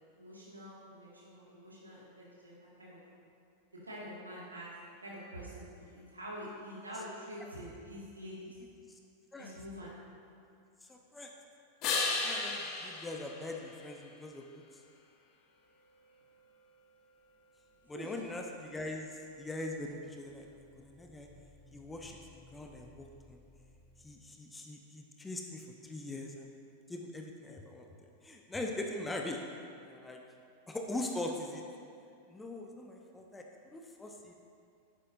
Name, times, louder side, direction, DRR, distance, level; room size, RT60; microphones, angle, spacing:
voice 1, 0.1-3.0 3.8-4.7 5.0-8.6 9.4-9.9 17.9-18.1, equal, 80° right, -6 dB, 2.0 m, -46 dB
voice 2, 10.8-11.3 12.2-14.8 17.9-21.3 21.7-22.2 22.5-23.4 24.0-26.5 26.9-27.9 28.2-29.4 29.8-30.2 30.7-31.6 32.3-34.3, left 2 dB, 10° left, 2 dB, 0.7 m, -42 dB
sound 1, 11.8-14.4 20.1-24.1, left 4 dB, 40° left, 1.2 m, -39 dB
11.0 x 9.0 x 2.7 m, 2.5 s
figure-of-eight pair, 90°, 0 cm